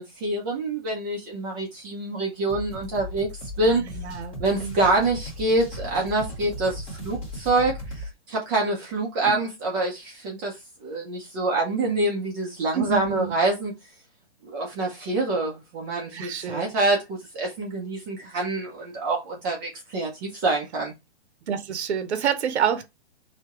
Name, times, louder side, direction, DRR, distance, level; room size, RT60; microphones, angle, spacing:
voice 1, 0.0-3.8 4.4-13.7 14.4-20.9, right 2 dB, 20° right, 0.6 m, -26 dB
sound 1, 2.5-8.1, left 1 dB, 15° left, 1.1 m, -37 dB
voice 2, 3.7-4.8 9.2-9.4 12.7-13.3 16.1-16.7 21.5-22.9, right 8 dB, 70° right, 0.8 m, -28 dB
3.4 x 2.8 x 2.9 m
hypercardioid pair, 150°, 34 cm